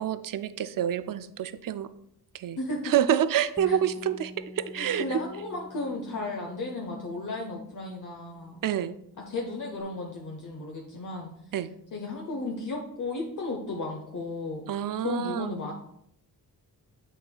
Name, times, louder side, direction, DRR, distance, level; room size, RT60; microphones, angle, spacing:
voice 1, 0.0-1.9 2.3-2.6 2.8-5.0 8.6-9.0 11.5-11.7 14.7-15.6, right 10 dB, 60° right, 13 dB, 0.5 m, -27 dB
voice 2, 2.6-2.9 3.7-3.8 4.7-8.6 9.2-11.3 11.9-14.7 15.0-15.7, left 2 dB, 50° left, 0 dB, 0.9 m, -34 dB
Bass guitar, 3.6-9.8, left 1 dB, 5° left, 0.4 m, -47 dB
8.0 x 6.3 x 2.3 m, 0.74 s
wide cardioid pair, 105°, 38 cm